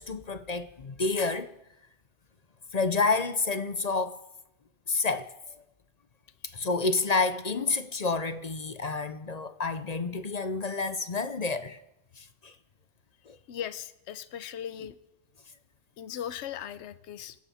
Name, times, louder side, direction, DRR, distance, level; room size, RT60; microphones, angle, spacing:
voice 1, 0.0-1.5 2.7-4.2 4.9-5.6 6.5-11.8 12.2-12.5 13.3-13.4, left 3 dB, 40° left, 0.7 m, -29 dB
voice 2, 13.5-15.0 16.0-17.4, left 10 dB, 70° left, 1.0 m, -38 dB
25.5 x 11.5 x 4.3 m
omnidirectional pair, 1.2 m